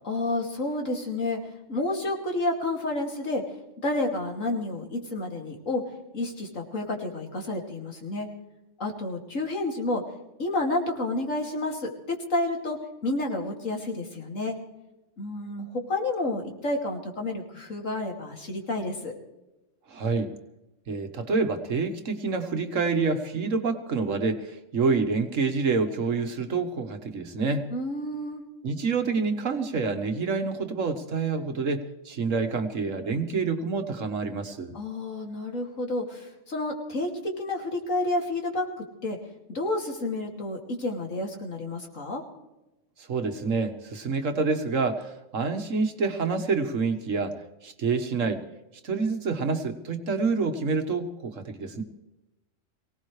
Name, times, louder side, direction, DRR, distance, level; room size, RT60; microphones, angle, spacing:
voice 1, 0.0-1.4 1.7-3.4 3.8-5.8 6.1-8.3 8.8-10.0 10.4-12.8 13.0-14.6 15.2-19.1 27.7-28.4 34.7-38.7 39.0-39.2 39.5-42.2, left 2 dB, 85° left, 1 dB, 2.9 m, -30 dB
voice 2, 19.9-20.3 20.9-27.7 28.6-34.8 43.1-47.4 47.6-48.4 48.8-51.8, right 4 dB, 80° right, 7 dB, 1.8 m, -27 dB
23.5 x 18.0 x 3.3 m, 0.97 s
omnidirectional pair, 1.3 m